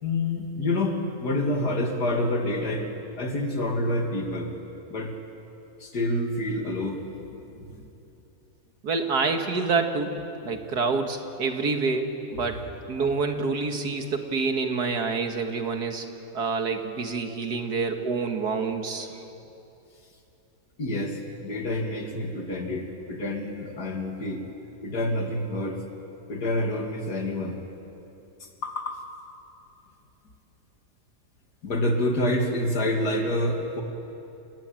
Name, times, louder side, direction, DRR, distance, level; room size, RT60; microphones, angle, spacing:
voice 1, 0.0-2.9 3.2-4.5 4.9-5.1 5.8-7.0 7.5-7.8 12.4-12.5 20.8-24.4 24.8-25.8 26.3-27.6 28.6-29.0 31.6-33.8, left 1 dB, 80° left, 3 dB, 3.1 m, -27 dB
voice 2, 8.8-10.2 10.4-16.1 16.3-19.2, right 4 dB, 80° right, 5 dB, 2.3 m, -27 dB
29.0 x 20.0 x 9.1 m, 2.9 s
omnidirectional pair, 1.7 m